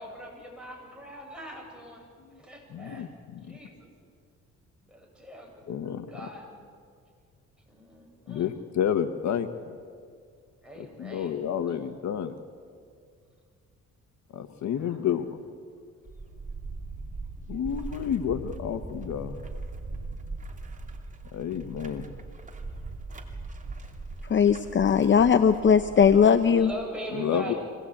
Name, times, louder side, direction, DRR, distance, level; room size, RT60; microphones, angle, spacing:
voice 1, 0.0-2.1 2.4-3.0 3.4-3.9 4.8-5.6 6.1-6.6 7.7-8.5 10.6-11.3 14.9-15.1 26.6-27.6, right 1 dB, 5° right, -1 dB, 7.4 m, -41 dB
voice 2, 2.7-3.6 5.7-6.3 8.3-9.8 10.8-12.4 14.3-15.4 17.5-19.4 21.3-22.2 27.1-27.5, left 8 dB, 65° left, 10 dB, 1.2 m, -30 dB
sound 1, 16.1-26.9, right 3 dB, 25° right, 2.8 m, -40 dB
voice 3, 24.3-26.7, left 7 dB, 40° left, 10 dB, 0.8 m, -19 dB
24.5 x 18.0 x 8.7 m, 2.1 s
cardioid pair, 90°, 30 cm